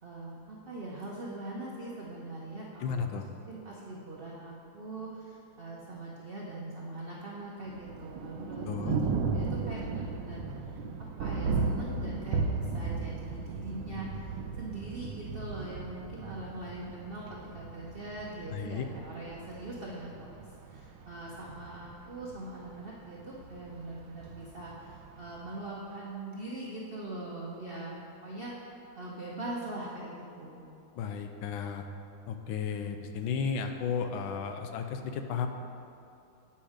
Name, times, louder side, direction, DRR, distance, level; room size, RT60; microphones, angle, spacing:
voice 1, 0.0-28.6 29.0-30.7, right 2 dB, 70° right, -4 dB, 0.5 m, -42 dB
voice 2, 2.8-3.2 8.7-9.0 18.5-18.8 31.0-31.8 32.3-35.5, left 6 dB, 80° left, 6 dB, 1.4 m, -33 dB
Thunder, 7.7-25.6, right 4 dB, 90° right, 1.4 m, -36 dB
8.3 x 5.5 x 5.0 m, 2.7 s
omnidirectional pair, 2.2 m